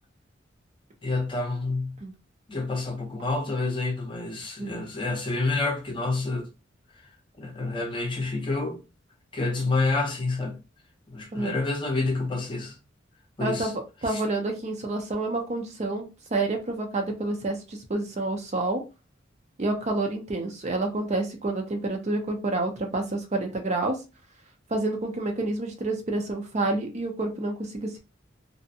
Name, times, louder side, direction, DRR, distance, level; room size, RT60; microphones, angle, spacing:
voice 1, 1.0-2.0 2.5-6.5 7.4-8.8 9.3-10.6 11.1-12.8 13.4-13.7 14.1-14.2, left 3 dB, 25° left, 0.6 m, -28 dB
voice 2, 13.4-13.7 14.0-18.8 19.6-24.0 24.7-28.0, right 2 dB, 35° right, 0.5 m, -28 dB
2.5 x 2.1 x 2.6 m
head